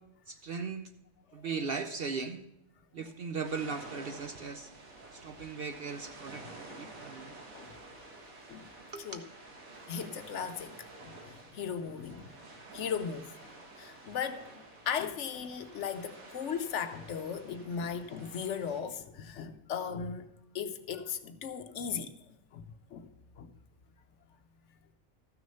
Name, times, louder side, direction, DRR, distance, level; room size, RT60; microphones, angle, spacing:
voice 1, 0.3-0.9 1.3-2.4 2.9-4.7 5.1-7.3 8.9-9.3, right 5 dB, 55° right, 0.7 m, -38 dB
sound 1, 3.4-18.8, right 2 dB, 80° right, 1.9 m, -50 dB
voice 2, 9.9-12.3 12.7-13.3 13.8-20.3 20.5-23.1 23.4-23.5, left 7 dB, 65° left, 0.9 m, -37 dB
13.5 x 6.3 x 5.5 m
omnidirectional pair, 1.4 m